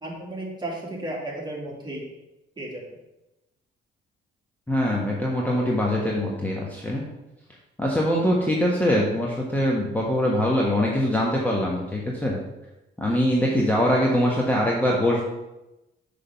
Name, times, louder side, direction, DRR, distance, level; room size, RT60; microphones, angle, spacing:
voice 1, 0.0-2.0 2.6-2.8, right 1 dB, 20° right, -2 dB, 2.2 m, -33 dB
voice 2, 4.7-7.0 7.8-12.4 13.0-15.3, equal, 10° left, -3 dB, 1.1 m, -23 dB
6.3 x 3.5 x 5.7 m, 0.96 s
cardioid pair, 90°, 20 cm